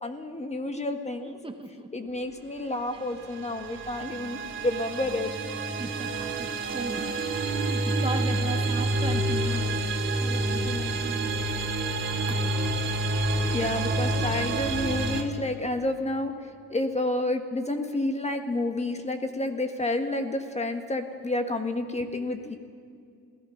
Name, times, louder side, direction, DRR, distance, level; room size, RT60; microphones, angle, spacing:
voice 1, 0.0-1.4 1.9-5.3 13.5-22.6, left 2 dB, 20° left, 6 dB, 1.7 m, -30 dB
voice 2, 1.4-2.1 5.8-7.4 7.7-9.7 10.2-11.3 12.3-12.5, right 2 dB, 15° right, 5 dB, 1.6 m, -37 dB
sound 1, 3.0-15.2, right 2 dB, 40° right, 3.2 m, -28 dB
27.0 x 17.0 x 5.9 m, 2.3 s
cardioid pair, 90°, 30 cm